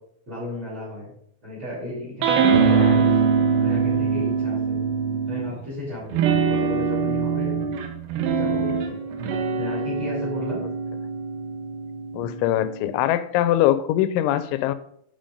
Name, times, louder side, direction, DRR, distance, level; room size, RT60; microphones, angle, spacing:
voice 1, 0.3-1.1 1.4-3.2 3.6-4.8 5.3-7.7 8.3-9.0 9.6-10.6, left 1 dB, 25° right, -6 dB, 4.8 m, -34 dB
sound 1, 2.2-5.6 6.1-12.9, right 5 dB, 75° right, 3.2 m, -23 dB
voice 2, 2.6-3.0 12.1-14.7, left 13 dB, 85° left, 13 dB, 3.0 m, -22 dB
9.0 x 6.9 x 5.2 m, 0.68 s
omnidirectional pair, 5.3 m